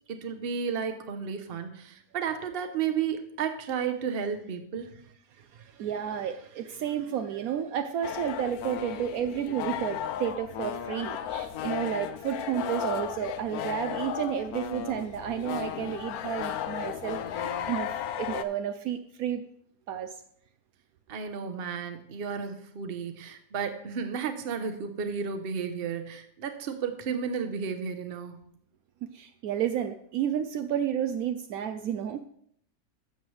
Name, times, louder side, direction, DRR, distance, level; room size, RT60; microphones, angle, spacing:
voice 1, 0.1-4.9 21.1-28.4, right 6 dB, 45° right, 7 dB, 0.9 m, -33 dB
voice 2, 5.4-17.9 18.2-19.4 19.9-20.1 29.1-32.2, right 9 dB, 75° right, 8 dB, 1.0 m, -31 dB
sound 1, 8.0-18.4, left 9 dB, 75° left, 1.1 m, -35 dB
12.5 x 7.5 x 3.2 m, 0.66 s
omnidirectional pair, 1.6 m